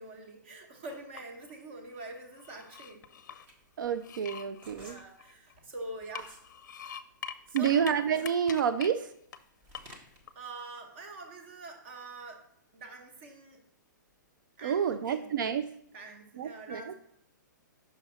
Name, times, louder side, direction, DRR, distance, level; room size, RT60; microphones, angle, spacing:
voice 1, 0.0-3.1 4.7-6.4 7.5-8.0 10.3-12.5 12.7-13.6 14.6-15.4 15.9-16.9, right 2 dB, 35° right, 4 dB, 1.0 m, -45 dB
sound 1, 0.9-1.6 2.0-3.5 4.0-5.6 6.0-7.9 8.2-8.9 9.3-9.4 9.7-10.3, left 8 dB, 65° left, 0.5 m, -44 dB
sound 2, 3.0-6.5 6.9-10.3, right 1 dB, 15° right, 0.7 m, -55 dB
voice 2, 3.8-5.0 7.5-9.1 14.6-15.7 16.4-16.8, right 8 dB, 80° right, 11 dB, 0.4 m, -29 dB
5.8 x 4.1 x 5.6 m, 0.70 s
hypercardioid pair, 170°, 11 cm